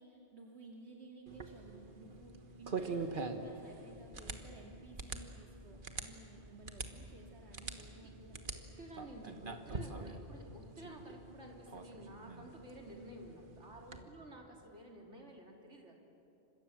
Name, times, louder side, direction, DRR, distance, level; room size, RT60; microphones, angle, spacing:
voice 1, 0.0-8.5 13.9-14.2, right 2 dB, 70° right, -1 dB, 2.6 m, -55 dB
sound 1, 1.3-14.0, right 3 dB, 50° right, 1.6 m, -45 dB
voice 2, 8.8-15.9, right 1 dB, 85° right, 0 dB, 3.9 m, -52 dB
29.0 x 26.0 x 7.5 m, 3.0 s
omnidirectional pair, 1.2 m